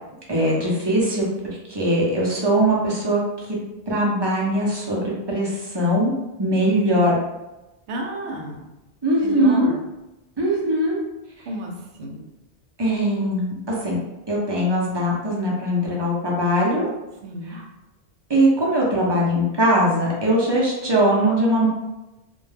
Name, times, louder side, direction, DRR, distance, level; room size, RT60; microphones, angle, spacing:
voice 1, 0.3-1.3 1.7-3.2 3.5-3.6 3.9-6.1 6.4-7.2 9.0-9.7 10.4-11.0 12.8-13.5 13.8-14.0 14.3-16.9 17.5-17.6 18.3-21.7, right 1 dB, 35° right, -4 dB, 0.5 m, -21 dB
voice 2, 7.9-8.6 9.2-9.8 11.4-12.2 17.2-17.6, equal, 90° right, 0 dB, 0.9 m, -32 dB
2.2 x 2.1 x 3.2 m, 1.0 s
omnidirectional pair, 1.1 m